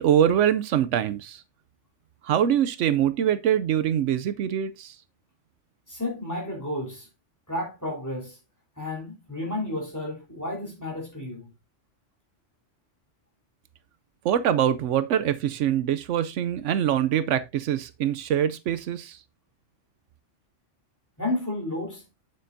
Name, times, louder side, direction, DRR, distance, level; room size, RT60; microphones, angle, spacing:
voice 1, 0.0-1.4 2.2-5.0 14.2-19.2, right 10 dB, 80° right, 0.9 m, -24 dB
voice 2, 5.9-7.1 7.5-8.4 8.8-11.5 21.2-22.0, left 1 dB, 15° left, 3.6 m, -32 dB
8.5 x 7.7 x 2.6 m
omnidirectional pair, 1.2 m